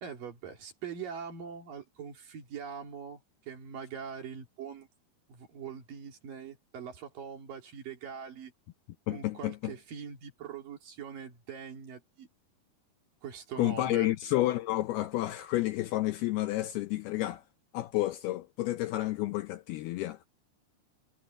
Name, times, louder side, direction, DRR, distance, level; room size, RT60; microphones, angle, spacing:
voice 1, 0.0-4.9 5.3-8.5 9.1-12.3 13.2-14.1 16.5-16.6, right 7 dB, 50° right, 4.0 m, -42 dB
voice 2, 9.1-9.7 13.6-17.4 17.7-20.2, left 16 dB, 80° left, 2.3 m, -30 dB
omnidirectional pair, 5.3 m